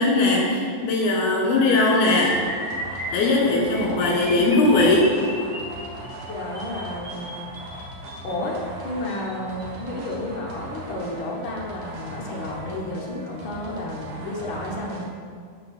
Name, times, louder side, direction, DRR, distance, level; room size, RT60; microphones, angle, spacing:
voice 1, 0.0-2.3 3.1-5.1, left 2 dB, 85° left, -3 dB, 4.0 m, -19 dB
sound 1, 1.1-8.3 9.1-9.3 9.6-9.8 10.1-10.3, equal, 25° right, 1.7 m, -34 dB
sound 2, 2.2-15.1, right 1 dB, 60° right, 2.3 m, -39 dB
voice 2, 6.3-7.3 8.2-15.1, left 1 dB, 65° left, -3 dB, 1.2 m, -31 dB
12.0 x 4.6 x 5.9 m, 2.1 s
omnidirectional pair, 4.4 m